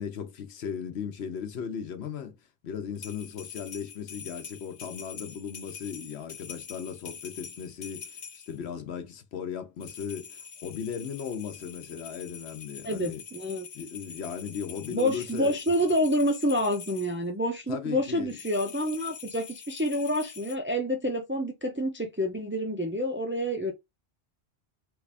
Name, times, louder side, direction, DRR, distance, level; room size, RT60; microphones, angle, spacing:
voice 1, 0.0-2.4 2.6-13.2 13.7-15.5 17.7-18.4, left 7 dB, 85° left, 1.0 m, -37 dB
sound 1, 2.9-8.6 9.8-17.1 18.3-20.6, left 7 dB, 50° left, 0.6 m, -45 dB
voice 2, 12.8-13.7 14.9-23.7, equal, 20° right, 0.3 m, -28 dB
3.3 x 2.5 x 3.3 m
omnidirectional pair, 1.1 m